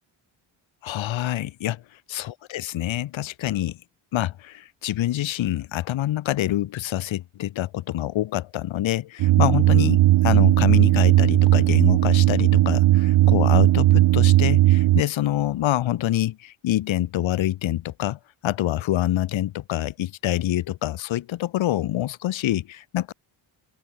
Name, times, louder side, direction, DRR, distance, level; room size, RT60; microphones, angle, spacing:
voice 1, 0.8-1.8 2.1-3.8 4.1-23.1, left 13 dB, 70° left, 1.3 m, -26 dB
sound 1, 9.2-15.0, right 16 dB, 65° right, 0.6 m, -17 dB
open air
wide cardioid pair, 160°, 48 cm